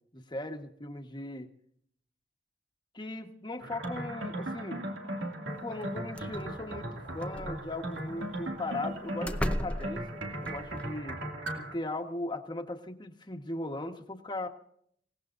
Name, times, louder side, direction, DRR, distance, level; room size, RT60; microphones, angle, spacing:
voice 1, 0.1-1.5 2.9-4.8 5.6-11.2 11.6-14.5, left 2 dB, 25° left, 5 dB, 1.4 m, -38 dB
sound 1, 3.6-11.7, right 1 dB, 90° right, 2.5 m, -37 dB
sound 2, 5.8-5.9 6.1-6.6 7.2-8.0 8.8-8.9 9.2-10.8, left 1 dB, 5° left, 0.6 m, -35 dB
27.0 x 17.5 x 2.6 m, 0.66 s
head